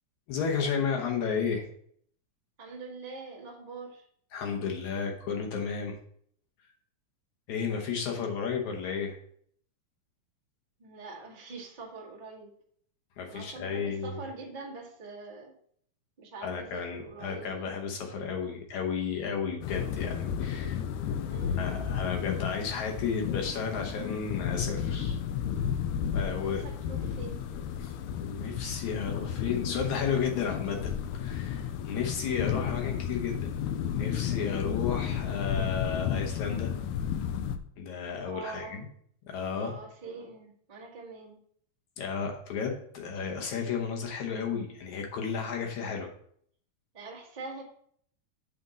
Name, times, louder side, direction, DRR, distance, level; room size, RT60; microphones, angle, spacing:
voice 1, 0.3-1.7 4.3-6.0 7.5-9.2 13.2-14.2 16.4-20.8 21.6-25.2 26.1-26.7 27.8-33.5 33.9-36.7 37.8-38.8 39.3-39.8 42.0-46.1, left 6 dB, 70° left, 2 dB, 2.1 m, -33 dB
voice 2, 2.6-4.1 10.8-12.5 13.3-15.5 16.2-17.8 21.2-21.8 26.2-27.4 32.2-32.6 38.2-38.8 39.6-41.4 46.9-47.6, right 3 dB, 90° right, -3 dB, 0.4 m, -44 dB
sound 1, 19.6-37.6, left 8 dB, 90° left, 1.6 m, -32 dB
7.6 x 4.3 x 5.0 m, 0.63 s
omnidirectional pair, 4.0 m